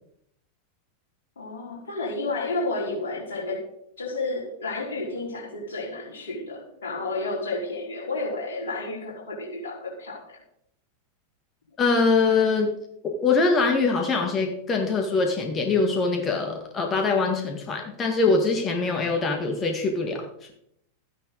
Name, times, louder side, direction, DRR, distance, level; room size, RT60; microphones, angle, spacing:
voice 1, 1.4-3.6 4.0-10.4, left 2 dB, 65° left, -3 dB, 4.7 m, -31 dB
voice 2, 11.8-12.7 13.2-20.2, left 4 dB, 25° left, 3 dB, 1.9 m, -23 dB
13.5 x 10.0 x 4.0 m, 0.75 s
figure-of-eight pair, 90°, 0 cm